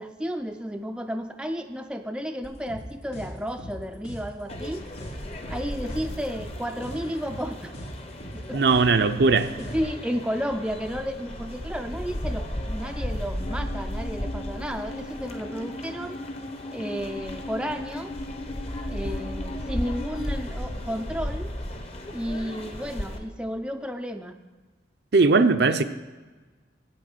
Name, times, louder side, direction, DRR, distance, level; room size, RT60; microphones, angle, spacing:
voice 1, 0.0-4.9 5.5-7.7 8.3-9.0 9.6-16.2 16.7-18.1 18.9-21.5 22.1-24.4, equal, 5° right, 6 dB, 0.4 m, -32 dB
sound 1, 2.4-9.8, equal, 85° left, 2.4 m, -39 dB
sound 2, 4.5-23.2, left 1 dB, 35° left, 0.9 m, -35 dB
voice 2, 8.5-9.5 25.1-25.8, right 4 dB, 65° right, 9 dB, 0.5 m, -19 dB
sound 3, 13.4-20.5, left 1 dB, 50° left, 0.5 m, -38 dB
8.6 x 8.4 x 6.4 m, 1.3 s
head